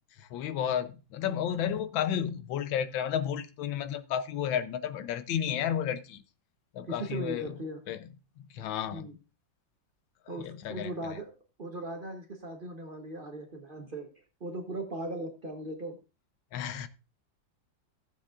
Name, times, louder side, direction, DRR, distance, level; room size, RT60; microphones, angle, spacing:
voice 1, 0.2-6.2 6.7-7.6 7.9-8.1 8.5-9.1 10.4-10.9 16.5-16.9, left 9 dB, 90° left, 1.5 m, -32 dB
voice 2, 6.8-7.8 8.9-9.2 10.3-11.3 11.6-14.1 14.4-16.0, right 2 dB, 40° right, 0.9 m, -38 dB
15.0 x 7.2 x 2.4 m
omnidirectional pair, 2.0 m